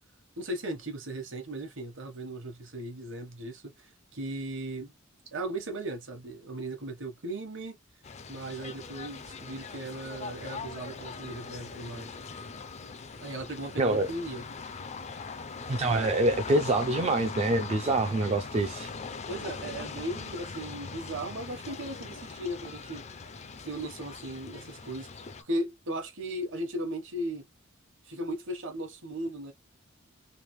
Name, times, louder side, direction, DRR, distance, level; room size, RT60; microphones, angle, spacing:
voice 1, 0.4-4.9 5.3-7.8 8.3-12.2 13.2-14.5 19.3-23.0 23.6-25.1 25.4-27.4 28.0-29.5, right 1 dB, 65° right, 1.1 m, -37 dB
sound 1, 8.0-25.4, left 4 dB, 35° left, 0.4 m, -41 dB
voice 2, 13.8-14.1 15.7-18.9, right 2 dB, 30° right, 0.4 m, -26 dB
3.3 x 2.5 x 3.1 m
head